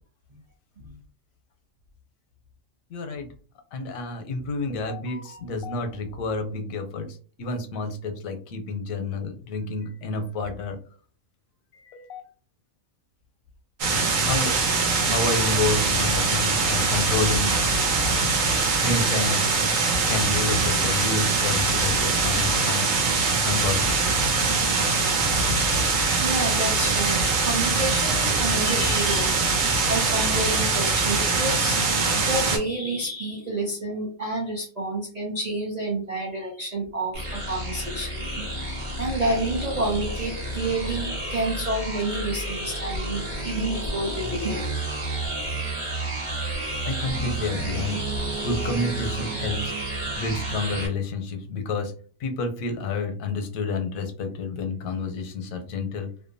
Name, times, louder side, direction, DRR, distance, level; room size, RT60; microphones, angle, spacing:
voice 1, 2.9-3.3 3.7-7.1 7.4-10.8 11.7-12.2 14.3-14.5 15.1-17.5 18.8-19.6 20.1-22.9 23.4-23.8 46.8-48.0 48.4-49.7 50.1-51.9 52.2-56.1, left 3 dB, 85° left, 6 dB, 1.0 m, -29 dB
sound 1, 13.8-32.6, right 4 dB, 75° right, 1.1 m, -22 dB
voice 2, 26.2-29.4 29.7-31.8 32.1-44.7, right 2 dB, 55° right, -2 dB, 0.4 m, -29 dB
sound 2, 37.1-50.9, right 1 dB, 25° right, 0.9 m, -31 dB
2.6 x 2.1 x 2.5 m, 0.41 s
omnidirectional pair, 1.4 m